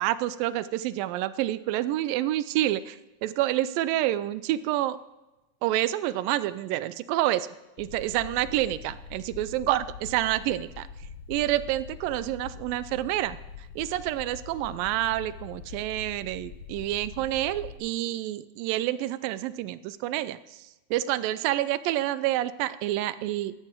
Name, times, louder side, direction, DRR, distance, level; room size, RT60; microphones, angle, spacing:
voice 1, 0.0-5.0 5.6-7.5 7.8-10.9 11.3-23.5, right 14 dB, 85° right, 15 dB, 2.2 m, -28 dB
sound 1, 7.8-17.8, left 7 dB, 60° left, 1.6 m, -44 dB
14.0 x 13.0 x 4.5 m, 1.0 s
omnidirectional pair, 4.1 m